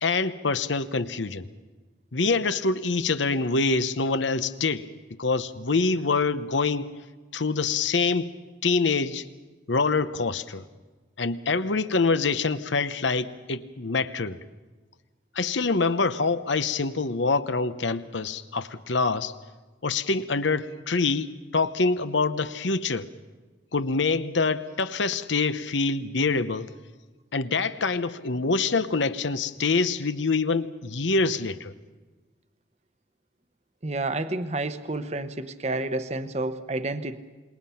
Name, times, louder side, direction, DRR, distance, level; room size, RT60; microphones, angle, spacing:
voice 1, 0.0-1.5 2.1-4.9 5.2-6.9 7.3-8.3 8.6-9.3 9.7-10.6 11.2-14.4 15.3-19.3 19.8-23.1 23.7-26.7 27.3-31.7, left 4 dB, 85° left, 1.0 m, -25 dB
voice 2, 33.8-37.2, right 2 dB, 35° right, 1.0 m, -30 dB
27.0 x 21.5 x 5.8 m
head